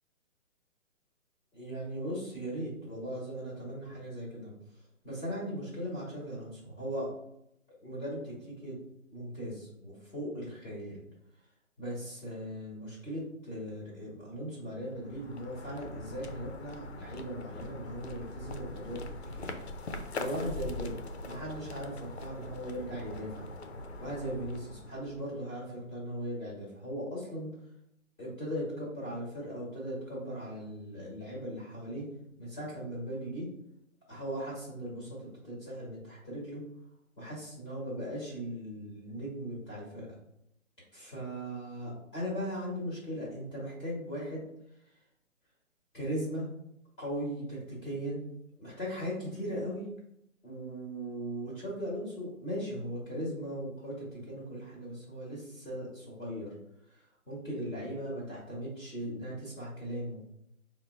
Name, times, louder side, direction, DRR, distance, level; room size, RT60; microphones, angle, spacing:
voice 1, 1.5-4.5 5.0-7.1 7.8-8.8 9.1-11.0 11.8-19.5 19.9-23.5 24.0-27.5 28.2-32.0 32.4-33.5 34.1-35.2 35.4-36.6 37.2-40.1 40.9-44.4 45.9-46.5 47.0-48.2 48.6-49.9 50.4-56.5 56.9-60.2, equal, 5° left, -8 dB, 1.0 m, -38 dB
sound 1, 14.8-25.5, left 2 dB, 55° left, 0.6 m, -42 dB
5.2 x 2.1 x 3.4 m, 0.78 s
hypercardioid pair, 175°, 40 cm